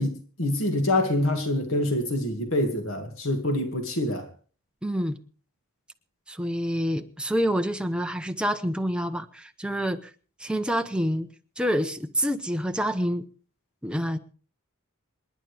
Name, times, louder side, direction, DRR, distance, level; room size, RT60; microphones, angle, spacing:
voice 1, 0.0-4.3, left 1 dB, 65° left, 2.3 m, -26 dB
voice 2, 4.8-5.2 6.3-10.1 10.4-11.3 11.6-13.3 13.8-14.2, equal, 5° right, 0.9 m, -27 dB
27.5 x 10.5 x 3.4 m
head